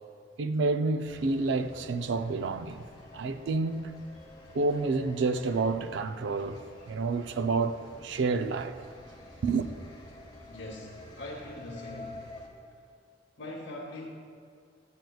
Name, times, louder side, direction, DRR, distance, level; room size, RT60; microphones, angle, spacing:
voice 1, 0.4-2.9 3.1-3.9 4.5-6.6 6.9-8.8 9.4-9.7, right 3 dB, 70° right, 0.4 m, -29 dB
sound 1, 1.0-12.5, left 2 dB, 20° left, 0.8 m, -49 dB
voice 2, 10.5-12.3 12.7-12.8 13.4-14.1, left 1 dB, 85° left, 0.9 m, -42 dB
10.5 x 7.7 x 2.3 m
head